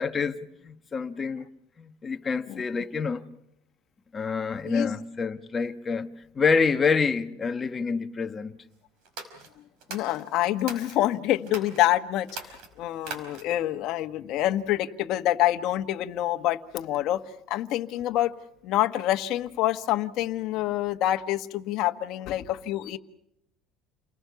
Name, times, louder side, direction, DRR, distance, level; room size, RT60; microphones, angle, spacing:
voice 1, 0.0-1.5 1.8-3.2 4.1-6.1 6.3-8.5, left 5 dB, 20° left, 1.1 m, -27 dB
sound 1, 9.0-11.0 11.4-11.8 12.2-13.6, right 4 dB, 60° right, 5.0 m, -41 dB
voice 2, 9.9-12.3 12.8-17.2 17.5-18.3 18.6-23.0, left 14 dB, 50° left, 1.3 m, -26 dB
29.5 x 20.5 x 7.0 m
cardioid pair, 165°, 0 cm